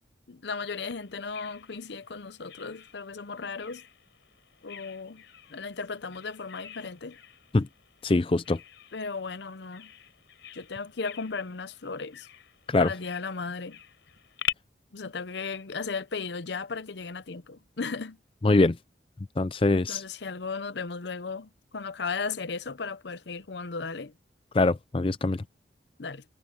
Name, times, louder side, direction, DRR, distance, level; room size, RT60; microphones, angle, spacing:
voice 1, 0.3-3.8 4.6-5.2 5.5-7.2 8.9-9.9 10.5-12.3 12.8-13.8 14.9-18.2 19.9-24.1 26.0-26.2, left 4 dB, 70° left, 0.7 m, -36 dB
Bird vocalization bird call bird song, 0.9-14.5, left 9 dB, 85° left, 4.3 m, -44 dB
voice 2, 8.0-8.6 12.7-12.9 18.4-18.8 19.4-20.0 24.5-25.4, left 2 dB, 30° left, 0.4 m, -23 dB
head